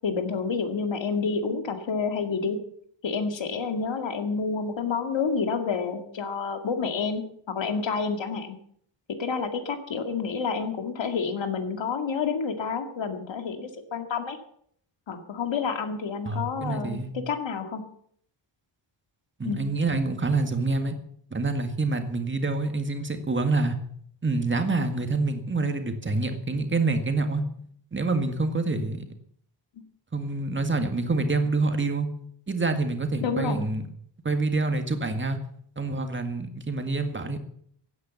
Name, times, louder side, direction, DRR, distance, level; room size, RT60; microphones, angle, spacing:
voice 1, 0.0-2.6 3.0-8.6 9.2-14.4 15.1-17.8 19.4-19.6 33.2-33.7, left 5 dB, 70° left, 7 dB, 2.1 m, -29 dB
voice 2, 16.2-17.1 19.4-21.0 21.3-23.8 24.2-27.4 27.9-29.0 30.1-32.1 32.5-33.9 34.2-35.4 35.8-37.4, right 3 dB, 25° right, 7 dB, 1.9 m, -26 dB
16.0 x 9.4 x 7.2 m, 0.65 s
wide cardioid pair, 150°, 46 cm